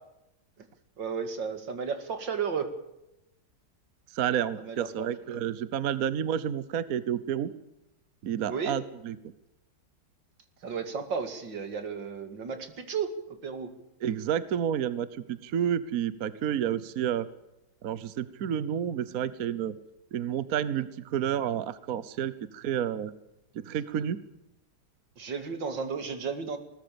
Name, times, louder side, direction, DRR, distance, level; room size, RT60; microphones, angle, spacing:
voice 1, 1.0-2.7 4.6-5.4 8.5-8.8 10.6-13.7 25.2-26.6, right 6 dB, 85° right, 8 dB, 2.9 m, -34 dB
voice 2, 4.1-7.5 8.2-9.2 14.0-17.3 17.8-19.7 20.1-23.1 23.6-24.2, right 9 dB, 60° right, 15 dB, 1.3 m, -30 dB
21.0 x 19.0 x 7.0 m, 0.88 s
omnidirectional pair, 1.9 m